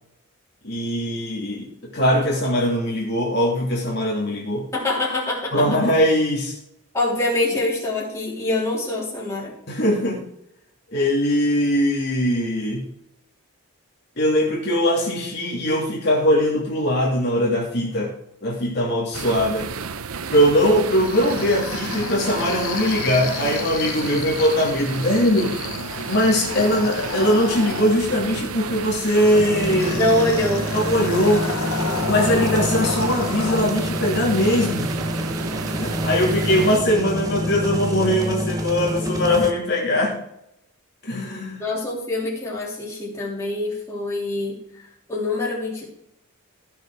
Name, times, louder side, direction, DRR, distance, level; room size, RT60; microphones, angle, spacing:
voice 1, 0.6-1.7 1.9-4.7 5.5-6.6 9.7-10.3 10.9-12.8 14.2-18.1 18.4-19.7 20.3-25.6 26.1-30.0 30.7-31.5 32.0-34.9 35.8-40.1 41.0-41.7, equal, 50° left, -3 dB, 2.7 m, -21 dB
voice 2, 4.7-5.8 6.9-9.6 24.1-24.3 30.0-30.7 41.6-44.8 45.1-45.9, left 2 dB, 15° left, -6 dB, 3.5 m, -24 dB
sound 1, 19.1-36.8, right 5 dB, 80° right, 0.7 m, -32 dB
sound 2, 20.9-28.2 29.8-33.6, left 5 dB, 75° left, 0.9 m, -32 dB
sound 3, 29.3-39.5, equal, 15° right, 1.1 m, -27 dB
14.5 x 6.5 x 4.7 m, 0.78 s
head